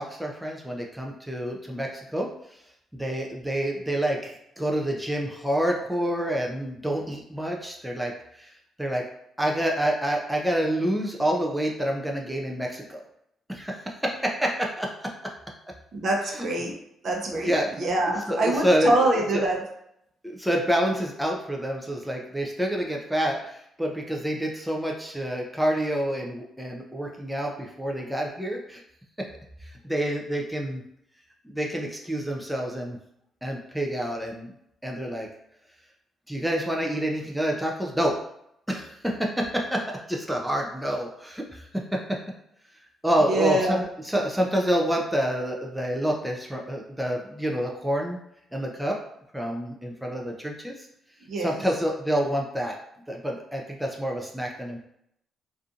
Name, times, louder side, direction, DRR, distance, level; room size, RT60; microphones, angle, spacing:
voice 1, 0.0-2.6 2.9-8.5 8.8-9.0 9.4-13.0 13.5-14.9 15.2-15.3 16.3-16.5 17.4-17.7 18.1-18.9 19.3-19.4 20.2-28.8 29.6-30.8 31.4-33.0 33.4-34.5 34.8-35.3 36.3-38.1 38.7-42.2 43.0-43.8 44.0-48.2 48.5-49.0 49.3-50.7 51.4-52.8 53.1-54.8, equal, 5° right, -1 dB, 0.4 m, -28 dB
voice 2, 15.9-16.7 17.0-17.5 17.8-19.6 43.3-43.9 51.2-51.6, right 2 dB, 55° right, 0 dB, 0.6 m, -25 dB
2.6 x 2.4 x 2.4 m, 0.76 s
cardioid pair, 90°, 0 cm